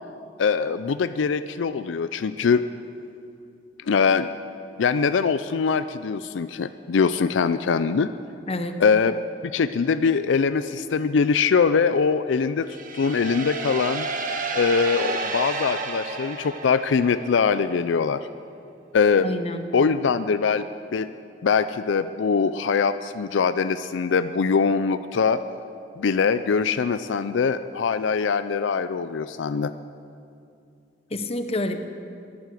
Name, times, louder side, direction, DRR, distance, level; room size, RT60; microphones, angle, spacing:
voice 1, 0.4-2.6 3.9-4.3 4.8-8.1 8.8-12.7 12.9-14.1 14.5-18.3 18.9-19.3 19.7-20.7 20.9-21.1 21.4-25.4 26.0-29.7, left 5 dB, 80° left, 12 dB, 0.4 m, -22 dB
voice 2, 8.5-8.8 19.2-19.7 31.1-31.8, left 1 dB, 35° left, 8 dB, 0.9 m, -28 dB
sound 1, 12.7-17.4, right 3 dB, 50° right, 1.1 m, -31 dB
11.5 x 11.5 x 7.7 m, 2.5 s
head